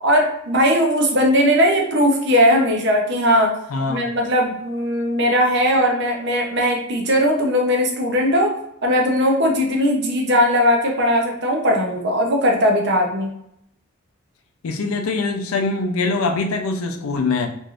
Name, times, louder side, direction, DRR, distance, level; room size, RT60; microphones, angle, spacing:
voice 1, 0.0-3.5 3.9-8.5 8.8-13.3, equal, 55° right, 1 dB, 0.7 m, -18 dB
voice 2, 3.7-4.1 14.6-17.5, left 3 dB, 85° left, 5 dB, 0.5 m, -23 dB
3.3 x 2.6 x 2.4 m, 0.75 s
head